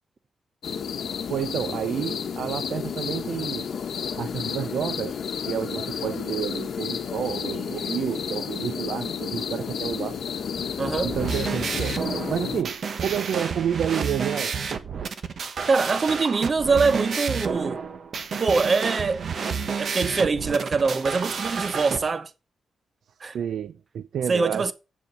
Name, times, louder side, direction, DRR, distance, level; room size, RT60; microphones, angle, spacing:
sound 1, 0.6-12.6, left 7 dB, 70° left, 1.0 m, -31 dB
voice 1, 1.3-3.7 4.1-5.2 5.4-12.0 12.3-14.6 23.3-24.7, right 9 dB, 80° right, 0.4 m, -30 dB
voice 2, 10.8-11.1 15.7-17.8 18.4-19.3 19.8-22.3 23.2-23.4 24.3-24.7, right 4 dB, 40° right, 0.8 m, -23 dB
sound 2, 11.0-22.0, right 5 dB, 60° right, 1.1 m, -30 dB
8.2 x 7.1 x 5.5 m
cardioid pair, 110°, 0 cm